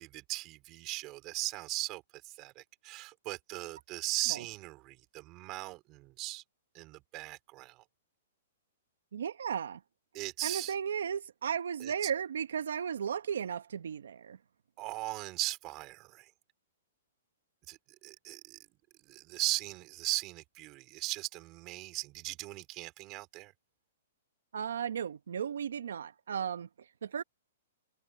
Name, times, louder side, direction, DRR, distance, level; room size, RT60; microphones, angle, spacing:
voice 1, 0.0-6.4 6.7-7.8 10.1-10.7 11.8-12.1 14.8-16.3 17.7-18.6 19.1-23.5, right 20 dB, 35° right, 4.0 m, -38 dB
voice 2, 9.1-9.8 10.4-14.4 24.5-27.2, right 8 dB, 80° right, 0.9 m, -35 dB
hypercardioid pair, 145°, 0 cm